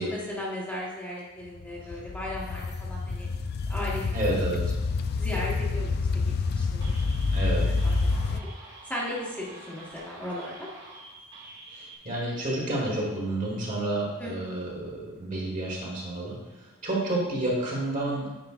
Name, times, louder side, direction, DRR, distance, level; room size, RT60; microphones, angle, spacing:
voice 1, 0.0-3.3 3.7-4.4 5.2-6.2 6.5-6.9 7.8-8.4 8.8-10.7 14.2-14.5, left 1 dB, 10° left, -6 dB, 1.2 m, -36 dB
sound 1, 1.5-8.4, left 4 dB, 50° left, 0.4 m, -28 dB
voice 2, 4.1-4.6 7.3-7.7 11.7-18.3, right 1 dB, 40° right, -4 dB, 1.6 m, -30 dB
sound 2, 6.8-12.0, right 2 dB, 60° right, 1.6 m, -47 dB
9.1 x 4.9 x 2.5 m, 1.1 s
head